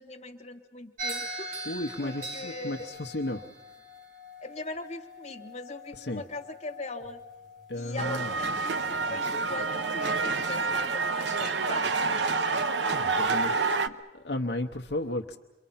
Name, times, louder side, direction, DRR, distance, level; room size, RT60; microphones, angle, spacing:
voice 1, 0.0-2.9 4.4-7.2 7.7-12.2 13.2-13.7, left 2 dB, 40° left, 2 dB, 1.6 m, -41 dB
sound 1, 1.0-9.3, right 1 dB, 45° right, 2.3 m, -42 dB
voice 2, 1.6-3.4 5.9-6.3 7.7-8.6 12.9-13.7 14.1-15.4, left 1 dB, 70° left, 3 dB, 0.9 m, -34 dB
sound 2, 8.0-13.9, right 4 dB, 85° right, 0.8 m, -28 dB
28.5 x 23.5 x 5.7 m, 1.0 s
head